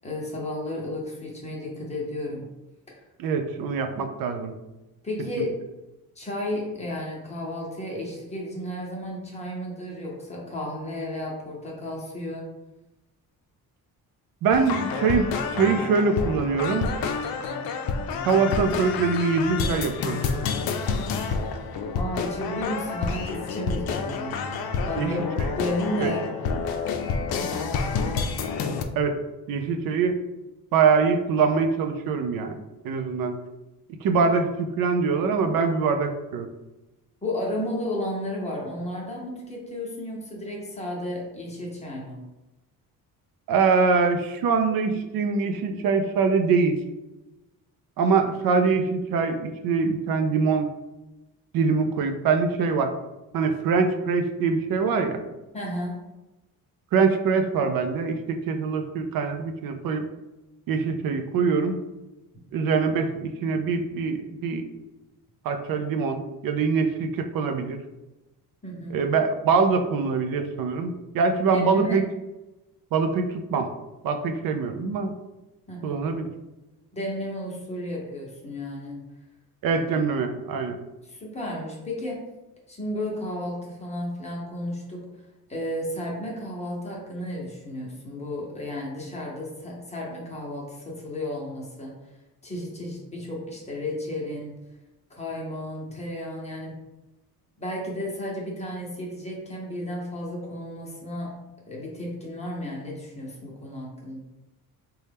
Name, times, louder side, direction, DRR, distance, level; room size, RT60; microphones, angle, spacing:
voice 1, 0.0-2.4 2.9-3.0 5.0-5.6 6.2-12.5 21.9-25.2 25.6-26.2 37.2-42.2 55.5-56.0 68.6-69.0 71.5-72.0 75.7-76.0 76.9-79.0 81.0-82.2 82.7-85.1 85.5-91.9 92.4-94.5 95.1-96.8 97.6-101.3 101.6-104.2, left 1 dB, 20° left, -3 dB, 0.8 m, -33 dB
voice 2, 3.2-4.5 5.4-5.5 14.4-16.9 18.3-20.2 25.0-25.1 25.4-25.5 26.0-26.1 29.0-29.2 29.5-30.2 30.7-32.6 32.8-33.4 34.0-36.5 43.5-46.8 48.0-50.7 51.5-52.9 53.3-55.2 56.9-60.0 60.7-61.8 62.5-64.6 65.4-67.8 68.9-72.0 72.9-73.7 74.0-75.1 75.8-76.3 79.6-80.8, right 5 dB, 70° right, 6 dB, 0.5 m, -24 dB
sound 1, 14.5-28.8, left 5 dB, 80° left, 0.5 m, -29 dB
4.1 x 2.2 x 3.4 m, 1.0 s
cardioid pair, 165°, 36 cm